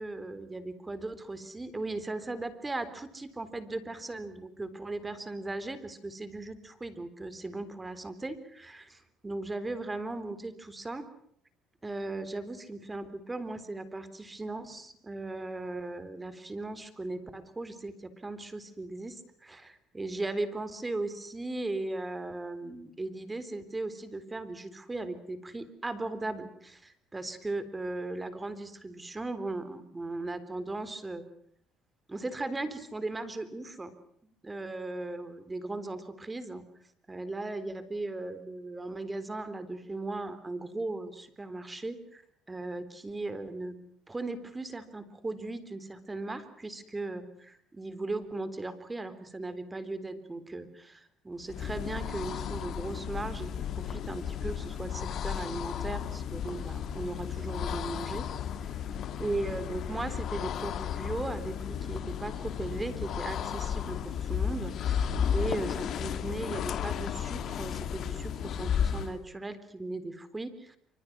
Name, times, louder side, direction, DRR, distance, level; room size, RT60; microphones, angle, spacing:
voice 1, 0.0-11.1 11.8-31.2 32.1-33.9 34.4-36.6 37.1-42.2 42.5-43.8 44.1-58.3 58.6-58.8 59.2-70.8, right 2 dB, 15° right, 13 dB, 3.7 m, -37 dB
sound 1, 51.4-69.2, left 8 dB, 55° left, 2.1 m, -34 dB
28.0 x 26.0 x 6.2 m, 0.66 s
cardioid pair, 100°, 0 cm